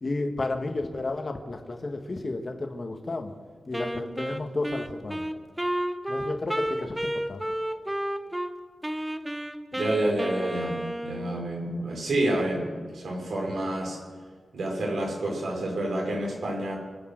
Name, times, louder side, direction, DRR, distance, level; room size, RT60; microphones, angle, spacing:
voice 1, 0.0-3.3 3.7-5.3 6.1-7.4, left 2 dB, 35° left, 4 dB, 1.5 m, -32 dB
Wind instrument woodwind instrument, 3.7-8.5 8.8-11.4, equal, 5° right, 0.8 m, -31 dB
voice 2, 9.7-14.0 14.5-16.8, right 1 dB, 75° right, -1 dB, 4.9 m, -29 dB
25.5 x 8.5 x 6.4 m, 1.5 s
wide cardioid pair, 165°, 0 cm